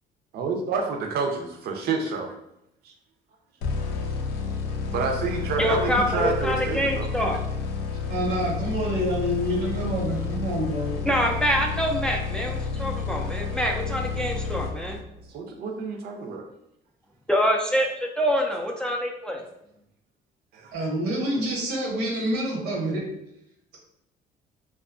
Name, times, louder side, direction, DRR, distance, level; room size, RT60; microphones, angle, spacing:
voice 1, 0.3-2.3 2.8-2.9 4.9-7.1 15.3-16.4 20.5-20.7 21.4-21.5 22.2-22.3, right 4 dB, 70° right, 3 dB, 0.6 m, -29 dB
sound 1, 3.6-15.3, left 5 dB, 85° left, 0.4 m, -30 dB
voice 2, 5.6-7.4 11.0-15.0 17.3-17.9 18.2-19.4, equal, 5° left, 0 dB, 0.3 m, -25 dB
voice 3, 8.1-10.9 20.7-23.0, equal, 85° right, -1 dB, 0.9 m, -27 dB
2.6 x 2.2 x 2.5 m, 0.79 s
cardioid pair, 110°, 17 cm